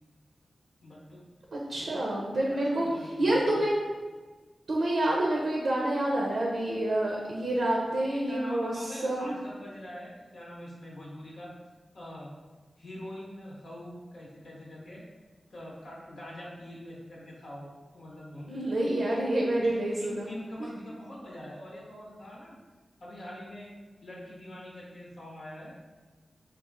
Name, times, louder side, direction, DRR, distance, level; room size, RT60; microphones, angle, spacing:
voice 1, 0.8-1.2 1.8-2.1 2.4-3.5 8.1-11.5 11.9-12.3 12.8-15.0 15.5-18.5 19.6-22.6 23.0-23.7 24.0-25.8, left 1 dB, 85° left, -5 dB, 0.9 m, -43 dB
voice 2, 1.5-3.7 4.7-8.7 9.0-9.3 18.5-20.3 20.6-20.7, right 1 dB, 80° right, -3 dB, 0.5 m, -28 dB
3.3 x 2.3 x 3.5 m, 1.3 s
cardioid pair, 45°, 0 cm